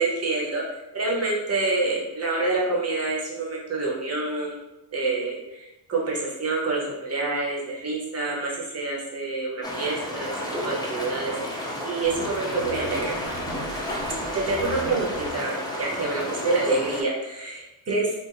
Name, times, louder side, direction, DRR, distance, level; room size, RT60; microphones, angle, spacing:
voice 1, 0.0-4.6 4.9-10.3 10.6-13.1 14.3-18.3, right 3 dB, 35° right, -3 dB, 0.8 m, -27 dB
sound 1, 9.6-17.0, left 1 dB, 10° left, 0.4 m, -32 dB
sound 2, 12.0-15.3, right 2 dB, 75° right, 0.7 m, -39 dB
2.8 x 2.4 x 2.5 m, 0.97 s
wide cardioid pair, 130°, 47 cm